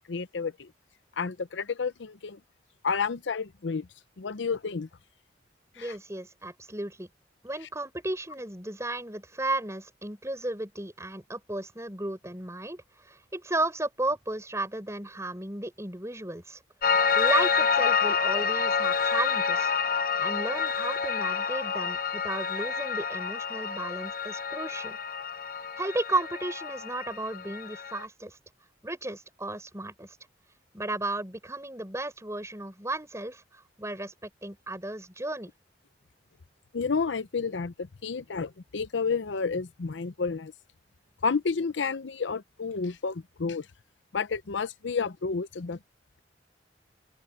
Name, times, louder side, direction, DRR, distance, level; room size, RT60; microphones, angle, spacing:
voice 1, 0.1-0.7 1.2-2.4 2.8-3.9 4.2-4.9 5.8-5.9 36.7-37.7 38.0-40.5 41.2-43.6 44.1-45.8, left 5 dB, 90° left, 0.7 m, -30 dB
voice 2, 5.8-7.1 7.4-16.6 17.2-19.7 20.2-25.0 25.8-28.4 28.8-30.2 30.7-35.5, right 2 dB, 15° right, 7.0 m, -34 dB
Piano, 16.8-28.0, left 6 dB, 50° left, 1.1 m, -28 dB
open air
head